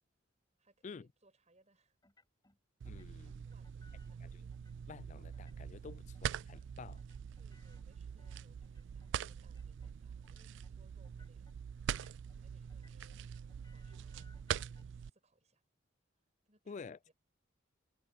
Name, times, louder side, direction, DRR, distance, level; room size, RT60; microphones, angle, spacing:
voice 1, 0.6-2.0 3.1-4.2 7.4-11.5 12.3-15.6 16.4-17.1, right 2 dB, 35° right, 7.7 m, -72 dB
sound 1, 2.0-2.6 2.8-4.2 4.5-5.0 5.3-5.9 6.1-6.7 7.0-9.2 9.4-10.0 10.2-10.7 11.0-11.6 11.9-12.4 12.7-14.8, left 2 dB, 20° left, 6.3 m, -69 dB
voice 2, 2.8-3.5 4.2-4.3 4.9-7.0 16.7-17.0, left 5 dB, 35° left, 0.3 m, -50 dB
sound 2, 2.8-15.1, right 8 dB, 60° right, 0.3 m, -44 dB
head